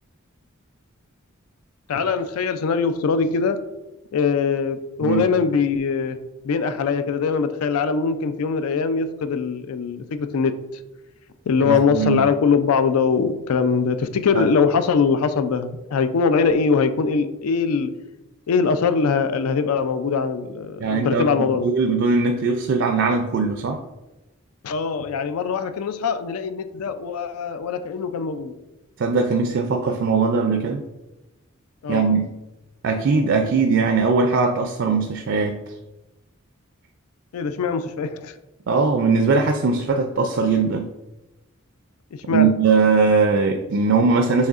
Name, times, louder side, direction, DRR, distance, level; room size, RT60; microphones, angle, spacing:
voice 1, 1.9-3.6 4.1-6.2 6.4-10.5 11.5-17.9 18.5-21.7 24.6-28.6 31.8-32.2 37.3-38.3 42.1-42.5, left 5 dB, 90° left, 10 dB, 0.4 m, -22 dB
voice 2, 11.6-12.2 14.3-14.5 20.8-23.8 29.0-30.8 31.9-32.3 32.8-35.6 38.7-40.9 42.3-44.5, right 4 dB, 55° right, 4 dB, 0.4 m, -20 dB
6.3 x 3.2 x 2.4 m, 1.0 s
head